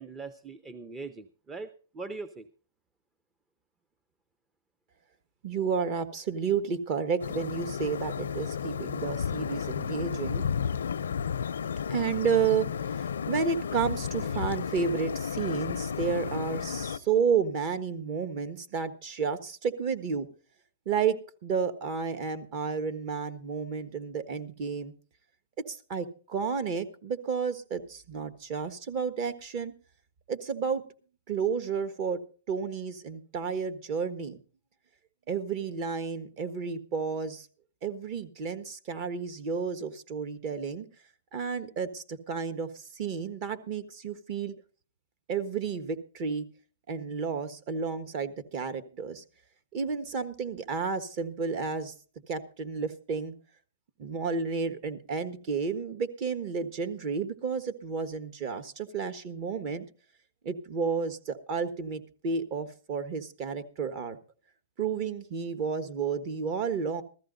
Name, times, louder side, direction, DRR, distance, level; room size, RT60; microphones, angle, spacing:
voice 1, 0.0-2.5, right 3 dB, 15° right, 13 dB, 0.6 m, -41 dB
voice 2, 5.4-10.5 11.9-20.3 20.8-24.9 25.7-29.7 30.3-30.8 31.3-32.2 32.5-34.4 35.3-37.5 37.8-40.9 41.3-44.5 45.3-46.5 46.9-49.2 49.7-51.9 52.3-53.3 54.0-59.9 60.4-64.2 64.8-67.0, right 6 dB, 40° right, 10 dB, 1.3 m, -31 dB
sound 1, 7.2-17.0, left 7 dB, 90° left, 0.5 m, -33 dB
15.0 x 13.5 x 3.9 m, 0.38 s
hypercardioid pair, 145°, 0 cm